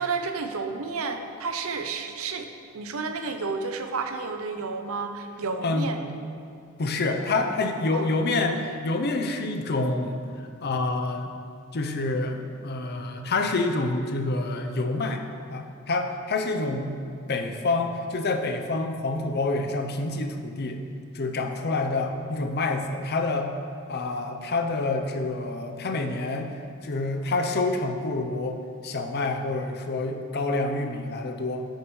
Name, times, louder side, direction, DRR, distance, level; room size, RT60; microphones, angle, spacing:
voice 1, 0.0-2.5 2.7-6.0 7.9-8.1, right 4 dB, 65° right, 6 dB, 0.6 m, -31 dB
voice 2, 5.6-5.9 6.8-10.2 10.6-11.3 11.7-15.2 15.5-17.0 17.3-20.8 21.1-23.5 23.9-26.5 26.8-31.6, left 2 dB, 50° left, 4 dB, 0.6 m, -27 dB
10.0 x 6.4 x 3.2 m, 2.5 s
head